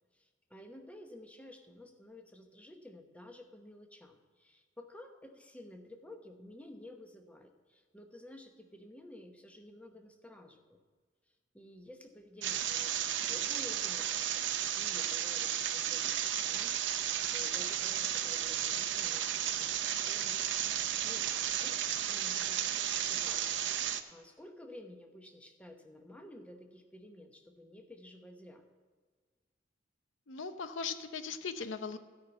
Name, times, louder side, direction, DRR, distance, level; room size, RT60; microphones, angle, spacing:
voice 1, 0.1-10.8 11.5-28.6, left 1 dB, 5° left, 4 dB, 0.9 m, -53 dB
sound 1, 12.4-24.0, right 10 dB, 65° right, 0.7 m, -33 dB
voice 2, 30.3-32.0, left 5 dB, 75° left, 10 dB, 0.7 m, -39 dB
13.5 x 5.7 x 8.0 m, 1.5 s
head